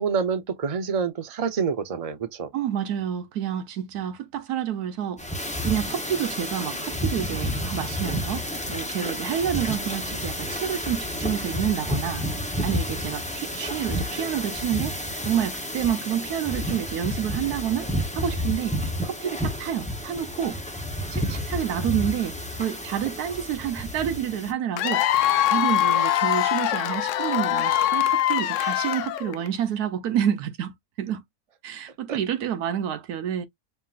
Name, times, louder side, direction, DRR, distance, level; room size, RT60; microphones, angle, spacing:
voice 1, 0.0-2.5 32.1-32.2, right 6 dB, 35° right, 0.5 m, -27 dB
voice 2, 2.5-5.2 5.6-8.4 8.7-12.2 12.6-15.0 15.2-18.8 19.0-20.6 21.1-25.0 25.5-31.2 31.6-33.4, right 9 dB, 80° right, 1.3 m, -28 dB
sound 1, 5.2-24.5, equal, 5° left, 0.7 m, -30 dB
Cheering / Applause / Crowd, 24.8-29.5, left 12 dB, 70° left, 0.8 m, -23 dB
5.7 x 2.9 x 2.5 m
omnidirectional pair, 1.6 m